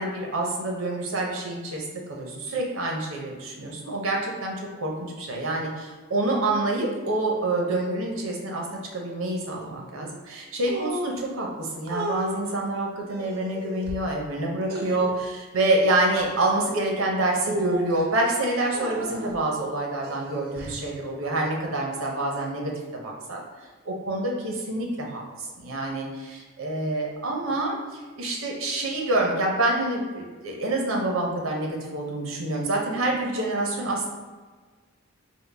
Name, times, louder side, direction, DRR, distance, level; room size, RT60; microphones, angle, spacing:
voice 1, 0.0-4.9 5.2-8.7 8.9-23.4 23.9-34.1, right 2 dB, 85° right, 0 dB, 0.7 m, -27 dB
sound 1, 10.7-11.2 11.9-12.3 13.1-13.9 14.7-15.1 15.9-16.3 17.4-18.0 18.7-19.4 20.0-20.8, right 1 dB, 50° right, 0.4 m, -33 dB
3.7 x 2.1 x 3.3 m, 1.4 s
head